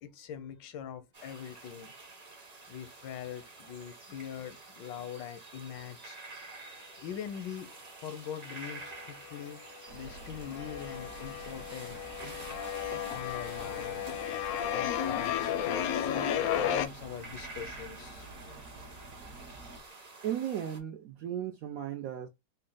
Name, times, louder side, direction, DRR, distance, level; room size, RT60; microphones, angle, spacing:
voice 1, 0.0-1.9 2.7-6.2 7.0-7.7 8.0-9.6 9.9-12.0 13.1-14.0 14.7-18.6, left 9 dB, 90° left, 1.4 m, -43 dB
sound 1, 1.1-20.8, right 3 dB, 30° right, 0.7 m, -49 dB
sound 2, 8.6-9.4 9.7-16.9, left 9 dB, 70° left, 0.9 m, -33 dB
sound 3, 9.9-19.8, right 2 dB, 55° right, 1.2 m, -49 dB
voice 2, 20.2-22.3, right 10 dB, 75° right, 0.8 m, -35 dB
4.2 x 2.1 x 3.7 m
omnidirectional pair, 1.9 m